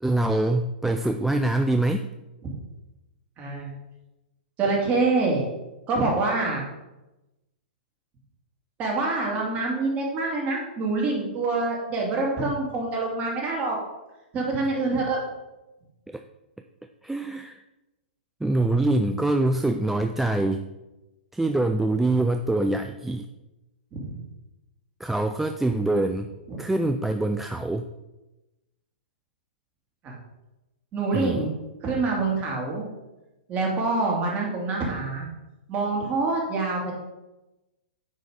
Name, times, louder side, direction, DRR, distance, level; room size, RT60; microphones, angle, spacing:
voice 1, 0.0-2.1 16.1-16.2 17.0-17.6 18.4-20.7 21.3-23.3 25.0-26.3 26.6-27.9 31.1-31.4, right 2 dB, 5° right, 6 dB, 0.3 m, -24 dB
voice 2, 3.4-3.7 4.6-5.4 5.9-6.6 8.8-13.8 14.3-15.2 24.0-24.2 26.5-26.6 30.0-30.1 30.9-31.4 31.8-32.8 33.5-35.3 35.7-36.9, right 3 dB, 25° right, -2 dB, 2.4 m, -26 dB
9.3 x 3.8 x 5.0 m, 1.0 s
hypercardioid pair, 125°, 5 cm